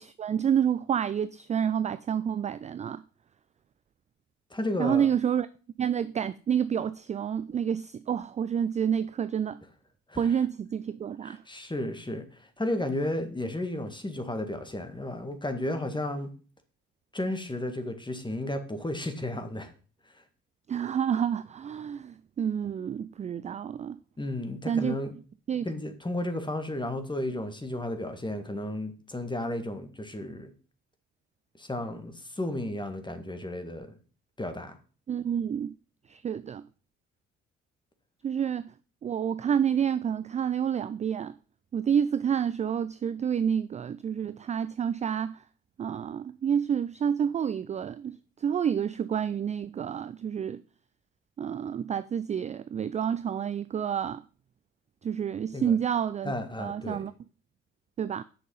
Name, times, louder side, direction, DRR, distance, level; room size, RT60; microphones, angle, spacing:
voice 1, 0.0-3.0 4.8-5.5 5.8-9.6 10.2-11.4 20.7-24.0 24.6-25.0 25.5-25.7 35.1-35.7 36.1-36.6 38.2-38.6 39.0-41.4 41.7-45.4 45.8-50.6 51.4-54.2 55.0-56.3 56.6-57.1 58.0-58.2, right 8 dB, 20° right, 0.3 m, -29 dB
voice 2, 4.5-5.1 10.1-10.4 11.2-16.3 17.1-19.7 24.2-25.1 25.6-30.5 31.6-33.9 34.4-34.8 55.5-55.8 56.2-57.0, left 1 dB, 10° left, 1.9 m, -33 dB
7.9 x 6.2 x 5.5 m
figure-of-eight pair, 45°, 36 cm